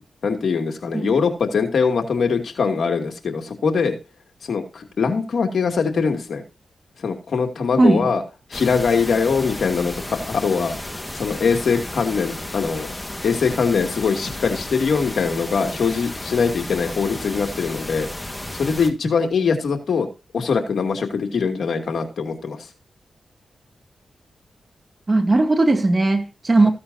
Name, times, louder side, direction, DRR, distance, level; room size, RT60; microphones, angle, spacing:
voice 1, 0.2-4.0 4.4-6.4 7.0-8.2 8.5-10.7 11.1-12.9 13.2-18.1 18.5-20.1 20.3-22.7, left 5 dB, 70° left, 2.4 m, -22 dB
sound 1, 8.5-18.9, left 1 dB, 15° left, 1.7 m, -33 dB
voice 2, 25.1-26.7, right 2 dB, 35° right, 2.5 m, -17 dB
15.0 x 8.5 x 2.8 m
cardioid pair, 60°, 0 cm